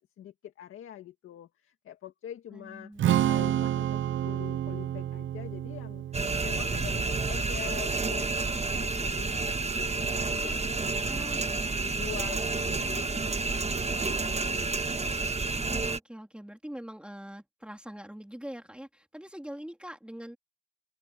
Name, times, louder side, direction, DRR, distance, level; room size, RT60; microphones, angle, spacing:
voice 1, 0.2-2.9 3.2-11.4 11.8-15.3, left 11 dB, 90° left, 1.9 m, -45 dB
voice 2, 2.5-3.3 11.0-12.1 15.5-20.4, equal, 5° right, 3.3 m, -43 dB
Strum, 3.0-9.3, right 11 dB, 70° right, 0.5 m, -31 dB
sound 1, 6.1-16.0, right 3 dB, 30° right, 1.5 m, -30 dB
cardioid pair, 60°, 21 cm